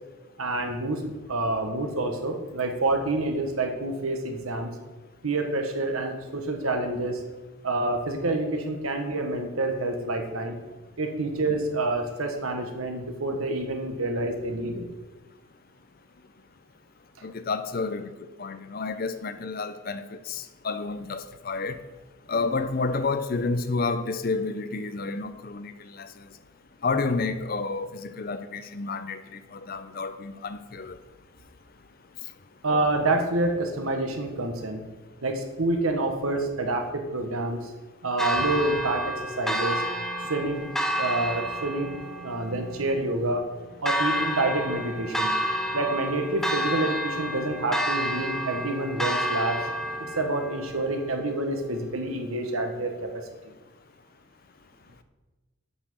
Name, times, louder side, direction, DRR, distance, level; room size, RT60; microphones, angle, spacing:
voice 1, 0.4-1.0 1.3-4.7 5.2-7.2 7.6-10.6 11.0-14.9 32.6-34.8 35.2-37.7 38.0-39.8 40.3-41.9 42.2-43.5 43.8-45.3 45.7-49.6 50.0-53.1, right 2 dB, 85° right, 1.4 m, -28 dB
voice 2, 17.2-18.0 18.4-21.8 22.3-26.1 26.8-31.0, left 3 dB, 45° left, 0.5 m, -30 dB
Church bell, 38.2-52.2, equal, ahead, 0.5 m, -30 dB
8.0 x 5.9 x 6.3 m
head